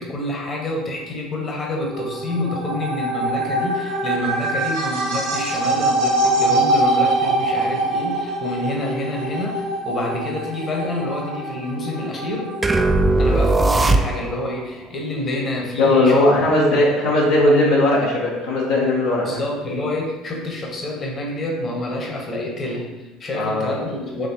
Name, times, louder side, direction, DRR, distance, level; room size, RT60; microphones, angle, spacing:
voice 1, 0.0-12.6 13.2-16.3 16.6-17.2 19.2-24.3, left 1 dB, 40° left, 0 dB, 1.0 m, -28 dB
sound 1, 1.8-13.1, right 2 dB, 75° right, 0.9 m, -23 dB
sound 2, 12.6-14.5, right 2 dB, 20° right, 0.3 m, -18 dB
voice 2, 15.8-19.4 23.3-23.8, left 1 dB, 75° left, -4 dB, 0.7 m, -18 dB
4.6 x 3.2 x 2.8 m, 1.1 s
hypercardioid pair, 65°, 0 cm